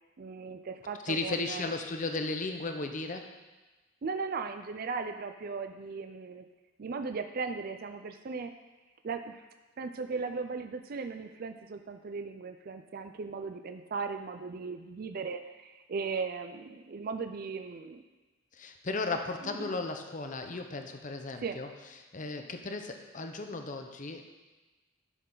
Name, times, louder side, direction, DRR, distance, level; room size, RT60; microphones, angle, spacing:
voice 1, 0.2-1.7 4.0-6.4 6.8-8.5 9.0-9.4 9.8-18.0 19.4-19.8 21.4-21.6, right 4 dB, 50° right, 7 dB, 0.4 m, -37 dB
voice 2, 1.0-3.3 18.5-21.7 22.1-24.2, left 3 dB, 40° left, 5 dB, 0.8 m, -35 dB
11.0 x 6.7 x 3.9 m, 1.2 s
head